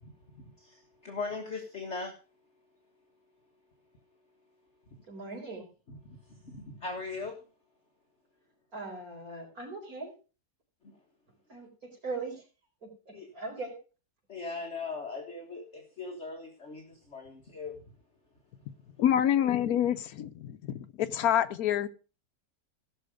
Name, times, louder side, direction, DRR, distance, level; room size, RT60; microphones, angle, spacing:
voice 1, 0.0-2.1 6.0-7.4 13.1-13.3 14.3-17.8, left 4 dB, 45° left, 1.7 m, -39 dB
voice 2, 5.1-5.7 8.7-10.1 11.3-12.4 12.8-13.7, right 3 dB, 55° right, 4.9 m, -40 dB
voice 3, 19.0-21.9, left 10 dB, 70° left, 1.2 m, -27 dB
16.0 x 6.5 x 5.1 m
omnidirectional pair, 1.8 m